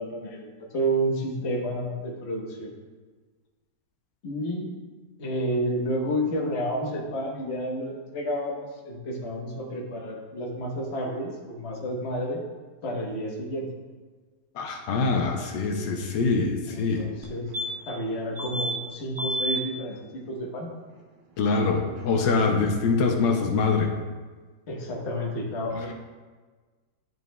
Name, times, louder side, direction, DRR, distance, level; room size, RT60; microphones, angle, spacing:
voice 1, 0.0-2.7 4.2-4.7 5.2-12.4 12.8-13.7 15.8-15.9 16.7-17.5 17.8-20.7 22.1-22.7 24.7-25.9, equal, 40° left, -1 dB, 1.2 m, -30 dB
voice 2, 14.5-17.1 21.4-23.9, left 4 dB, 85° left, 2 dB, 1.4 m, -24 dB
sound 1, 17.2-17.3 17.5-18.0 18.4-18.8 19.2-19.6 22.0-22.1 22.3-22.4, equal, 65° right, 0.5 m, -30 dB
11.0 x 5.3 x 2.2 m, 1.4 s
omnidirectional pair, 1.9 m